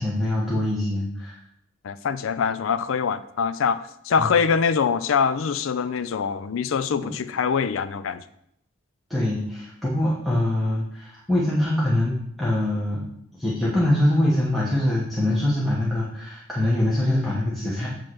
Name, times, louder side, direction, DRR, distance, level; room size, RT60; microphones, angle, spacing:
voice 1, 0.0-1.4 4.2-4.3 7.0-7.1 9.1-13.0 13.4-17.9, left 1 dB, ahead, -7 dB, 1.1 m, -23 dB
voice 2, 1.8-8.2, left 6 dB, 75° left, 13 dB, 0.4 m, -24 dB
8.5 x 3.2 x 6.0 m, 0.73 s
head